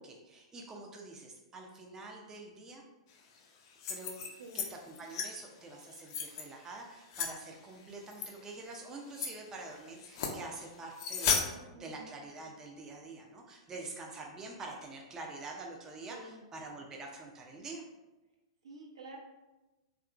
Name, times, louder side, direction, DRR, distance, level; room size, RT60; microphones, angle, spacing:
voice 1, 0.0-2.8 3.9-4.2 4.5-17.8, right 3 dB, 20° right, 0 dB, 0.4 m, -46 dB
sound 1, 3.7-4.7 4.9-5.3 5.8-6.4 7.1-7.3 8.1-8.3 8.7-8.8 9.1-9.3 10.0-10.4 11.0-11.4, left 6 dB, 55° left, 0.4 m, -34 dB
voice 2, 11.5-12.1 16.1-16.5 18.6-19.2, right 3 dB, 75° right, -2 dB, 0.7 m, -49 dB
2.8 x 2.3 x 2.3 m, 1.1 s
figure-of-eight pair, 105°, 3 cm